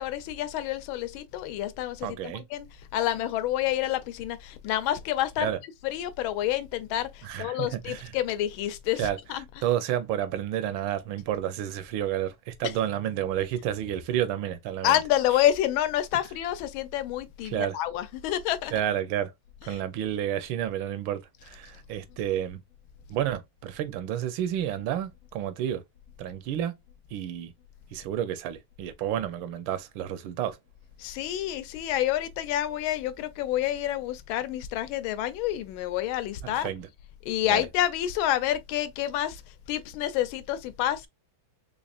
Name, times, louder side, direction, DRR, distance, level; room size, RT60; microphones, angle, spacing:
voice 1, 0.0-2.7 2.9-5.5 5.8-9.7 12.6-12.7 14.8-18.7 19.7-19.8 31.0-36.7 37.2-41.1, left 12 dB, 80° left, 1.4 m, -28 dB
voice 2, 2.0-2.4 5.4-5.6 7.2-8.1 9.0-9.2 9.6-14.9 17.4-17.8 18.7-19.3 19.6-22.6 23.1-25.8 26.2-26.7 27.1-27.5 27.9-30.6 36.4-36.9 37.5-37.7, right 11 dB, 80° right, 1.3 m, -30 dB
4.1 x 3.4 x 2.4 m
omnidirectional pair, 2.2 m